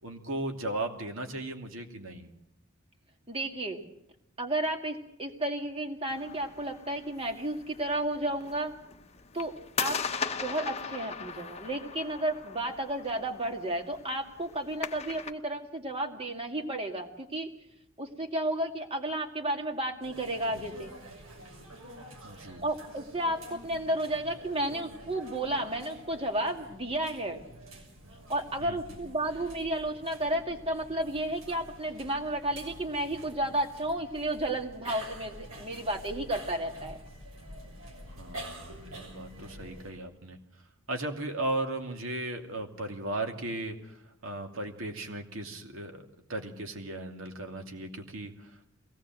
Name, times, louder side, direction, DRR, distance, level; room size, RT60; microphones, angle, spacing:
voice 1, 0.0-2.3 22.2-22.6 28.6-29.0 38.0-40.4 40.9-48.6, right 2 dB, 70° right, 4 dB, 2.6 m, -36 dB
voice 2, 3.3-3.8 4.4-8.7 9.3-10.0 10.3-17.5 18.0-20.9 22.4-27.4 28.3-37.0, right 1 dB, 25° right, 4 dB, 2.3 m, -32 dB
sound 1, 6.1-15.3, left 6 dB, 30° left, 1.0 m, -39 dB
sound 2, 20.0-39.9, right 1 dB, 85° right, 6.5 m, -47 dB
22.5 x 18.0 x 7.6 m, 0.80 s
head